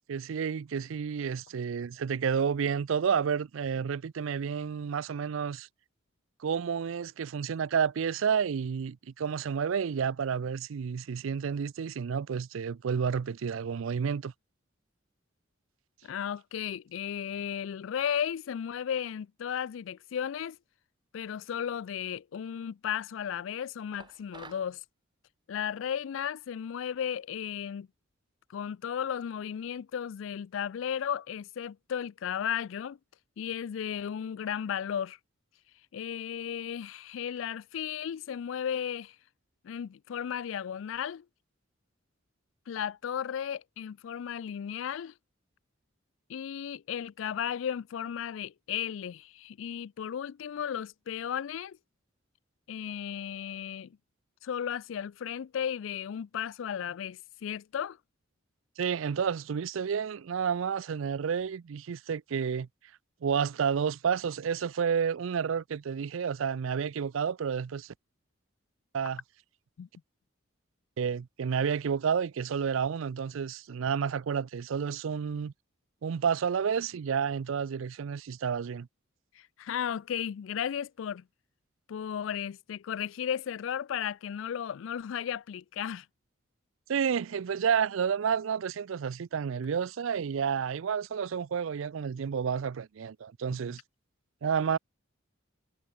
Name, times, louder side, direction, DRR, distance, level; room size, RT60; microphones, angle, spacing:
voice 1, 0.0-5.7 6.4-14.3 58.8-62.7 63.2-67.9 68.9-69.2 71.0-75.5 76.0-78.9 86.9-93.8 94.4-94.8, right 7 dB, 80° right, 0.4 m, -30 dB
voice 2, 16.0-20.6 21.1-24.8 25.5-27.9 28.5-33.0 33.4-35.2 35.9-39.2 39.6-41.2 42.7-45.1 46.3-51.8 52.7-54.0 54.4-58.0 69.8-69.9 79.4-81.2 81.9-86.1, left 8 dB, 75° left, 0.3 m, -35 dB
sound 1, 24.0-24.7, right 4 dB, 20° right, 1.0 m, -49 dB
head